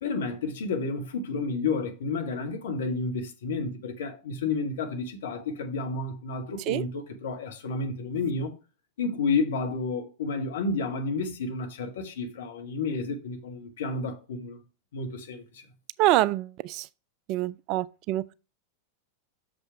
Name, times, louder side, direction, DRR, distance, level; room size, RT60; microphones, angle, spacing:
voice 1, 0.0-8.5 9.0-14.6 14.9-15.6, left 4 dB, 60° left, 1.5 m, -31 dB
voice 2, 16.0-16.9 17.3-18.3, right 16 dB, 40° right, 0.3 m, -26 dB
6.6 x 5.3 x 4.5 m
figure-of-eight pair, 90°, 0 cm